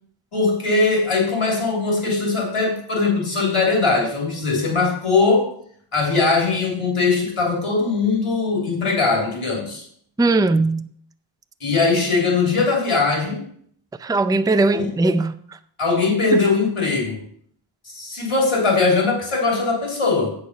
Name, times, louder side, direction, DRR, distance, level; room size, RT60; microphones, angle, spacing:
voice 1, 0.3-5.5 5.9-9.8 11.6-13.5 14.7-14.9 15.8-17.2 17.8-20.3, left 3 dB, 85° left, 3.3 m, -20 dB
voice 2, 10.2-10.9 14.0-15.3, right 2 dB, 10° right, 0.4 m, -19 dB
8.4 x 6.6 x 5.6 m
wide cardioid pair, 50°, 50 cm